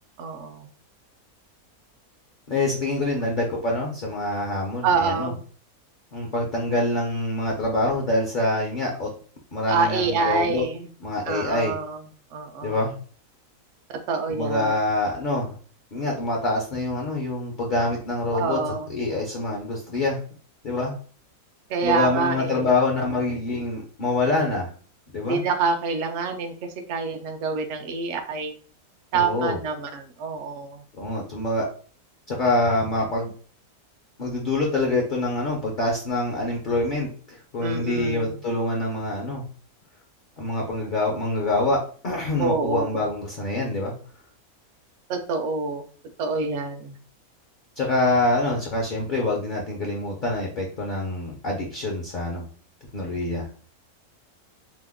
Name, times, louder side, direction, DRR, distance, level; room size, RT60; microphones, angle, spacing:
voice 1, 0.2-0.7 4.8-5.4 9.7-10.9 11.3-12.0 12.3-12.8 14.1-14.7 18.3-18.9 21.7-22.7 25.2-26.6 26.9-28.5 29.1-30.8 37.6-38.4 42.4-43.0 45.1-45.8 46.2-47.0, right 4 dB, 65° right, 5 dB, 0.8 m, -26 dB
voice 2, 2.5-5.3 6.1-9.1 9.5-10.6 11.0-11.8 12.6-12.9 14.3-15.6 15.9-18.6 18.9-20.2 20.6-20.9 21.8-24.7 25.1-25.4 29.1-29.6 30.9-31.7 32.3-33.3 34.2-39.4 40.4-41.8 42.0-43.9 47.8-52.5 52.9-53.5, left 2 dB, 55° left, -1 dB, 0.6 m, -25 dB
2.9 x 2.1 x 3.4 m, 0.43 s
omnidirectional pair, 1.5 m